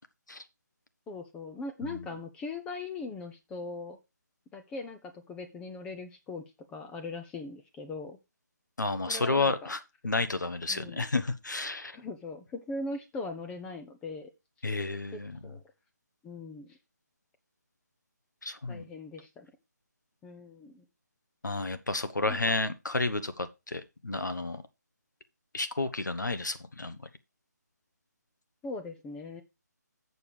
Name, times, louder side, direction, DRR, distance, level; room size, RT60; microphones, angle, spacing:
voice 1, 1.1-4.0 4.5-8.2 9.1-9.7 10.7-11.1 11.9-14.3 15.1-15.6 16.2-16.8 18.7-19.5 20.2-20.8 22.3-22.4 28.6-29.4, left 3 dB, 10° left, 0.7 m, -40 dB
voice 2, 8.8-12.0 14.6-15.3 18.4-18.8 21.4-24.6 25.5-27.0, left 3 dB, 90° left, 1.3 m, -31 dB
7.1 x 6.9 x 5.0 m
figure-of-eight pair, 155°, 10 cm